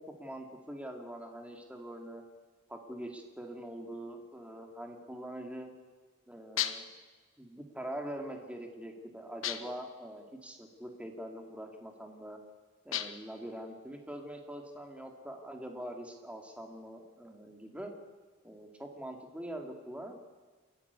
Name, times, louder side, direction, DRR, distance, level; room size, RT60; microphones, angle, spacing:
voice 1, 0.0-2.2 2.7-5.7 6.3-6.9 7.4-12.4 12.8-17.9 18.4-20.2, right 1 dB, 5° right, 2 dB, 2.5 m, -43 dB
sound 1, 6.6-7.0 9.4-9.9 12.9-13.4, left 10 dB, 70° left, 1.1 m, -35 dB
28.5 x 12.0 x 8.2 m, 1.4 s
head